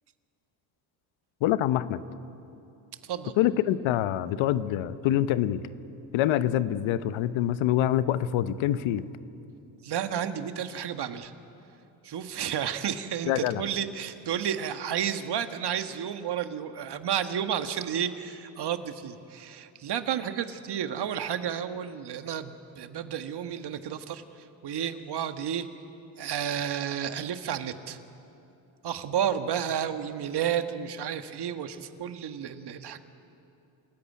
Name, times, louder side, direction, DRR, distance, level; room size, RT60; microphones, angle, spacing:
voice 1, 1.4-2.0 3.4-5.6 6.1-9.0 13.3-13.6, left 12 dB, 75° left, 14 dB, 0.9 m, -25 dB
voice 2, 3.0-3.3 9.8-11.3 12.0-25.7 26.2-28.0 28.8-33.0, right 9 dB, 55° right, 9 dB, 1.5 m, -31 dB
28.0 x 14.0 x 9.5 m, 2.7 s
supercardioid pair, 70°, 47 cm